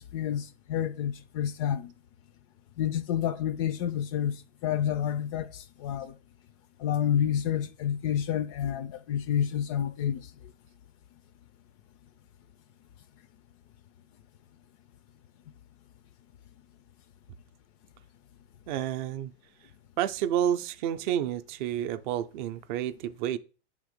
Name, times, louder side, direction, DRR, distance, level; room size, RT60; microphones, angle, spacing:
voice 1, 0.0-1.9 2.8-6.1 6.8-10.3, left 9 dB, 35° left, 0.4 m, -29 dB
voice 2, 18.7-19.3 20.0-23.4, right 10 dB, 50° right, 0.5 m, -30 dB
8.2 x 3.5 x 6.5 m
supercardioid pair, 165°, 32 cm